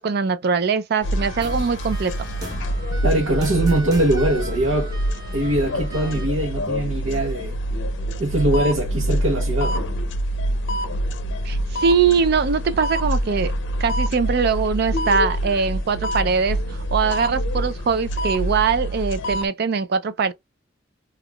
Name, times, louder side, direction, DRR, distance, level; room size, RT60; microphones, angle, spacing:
voice 1, 0.0-2.3 11.4-13.5 13.8-20.3, right 5 dB, 55° right, 0.4 m, -22 dB
sound 1, 1.0-19.5, equal, 65° left, 0.6 m, -26 dB
sound 2, 1.2-6.3, right 2 dB, 20° right, 0.8 m, -37 dB
voice 2, 3.0-4.9 5.3-7.6 8.2-9.8, right 1 dB, 70° right, 0.8 m, -22 dB
3.5 x 2.3 x 2.2 m
head